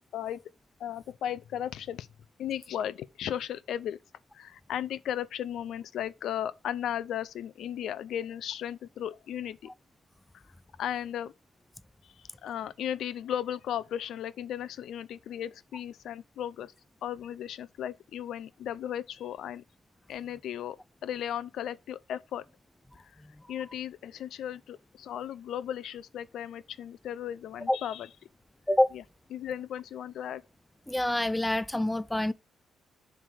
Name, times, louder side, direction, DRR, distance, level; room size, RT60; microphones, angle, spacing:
voice 1, 0.8-2.1 2.4-4.0 4.3-9.7 10.3-10.4 10.8-11.3 12.0-16.7 17.0-19.6 20.1-20.8 21.0-22.4 23.1-23.2 23.5-28.1 28.9-29.0 29.3-30.4, left 10 dB, 75° left, 0.4 m, -36 dB
voice 2, 30.9-32.3, left 1 dB, 10° left, 0.4 m, -26 dB
7.4 x 3.3 x 6.0 m
cardioid pair, 90°, 0 cm